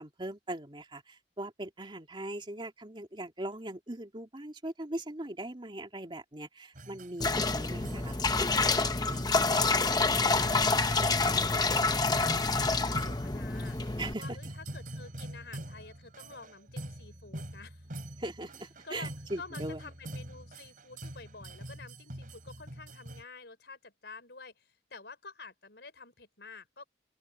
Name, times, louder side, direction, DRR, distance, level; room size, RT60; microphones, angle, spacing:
voice 1, 0.0-8.2 14.0-14.4 18.2-19.8, right 1 dB, 30° right, 2.6 m, -40 dB
sound 1, 6.7-23.2, right 1 dB, 50° right, 4.3 m, -45 dB
sound 2, 7.2-14.1, left 3 dB, 25° left, 1.0 m, -27 dB
voice 2, 9.5-13.8 14.1-17.8 18.8-19.1 19.4-26.9, left 4 dB, 70° left, 5.1 m, -49 dB
open air
head